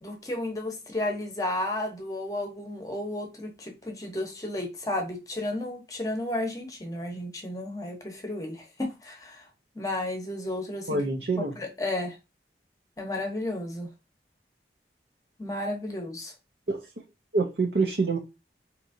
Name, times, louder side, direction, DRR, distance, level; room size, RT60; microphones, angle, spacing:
voice 1, 0.0-9.5 9.7-11.0 11.4-12.2 13.0-13.9 15.4-16.3, left 1 dB, 20° left, 0.9 m, -33 dB
voice 2, 10.9-11.5 16.7-16.9 17.3-18.2, right 3 dB, 55° right, 0.6 m, -26 dB
4.5 x 2.9 x 2.6 m
head